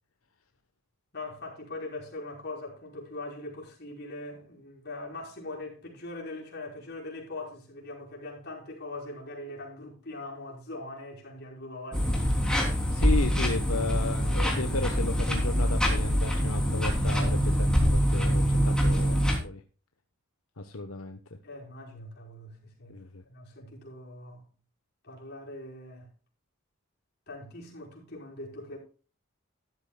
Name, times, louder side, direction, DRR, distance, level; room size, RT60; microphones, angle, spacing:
voice 1, 1.1-12.3 21.4-22.9 23.2-24.4 25.0-26.1 27.3-28.8, left 2 dB, 50° left, 5.2 m, -41 dB
sound 1, 11.9-19.4, equal, 5° left, 3.3 m, -25 dB
voice 2, 12.9-19.6 20.6-21.2 22.9-23.2, left 3 dB, 80° left, 1.2 m, -34 dB
13.0 x 12.5 x 2.4 m
head